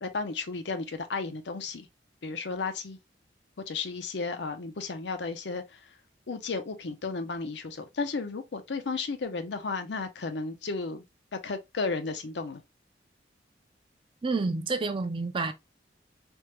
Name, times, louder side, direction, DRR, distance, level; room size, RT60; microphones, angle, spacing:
voice 1, 0.0-1.9 2.2-3.0 3.7-5.8 6.3-11.0 11.3-12.6, left 4 dB, 85° left, 0.6 m, -33 dB
voice 2, 14.2-15.5, right 3 dB, 30° right, 0.4 m, -29 dB
3.5 x 2.1 x 2.9 m
head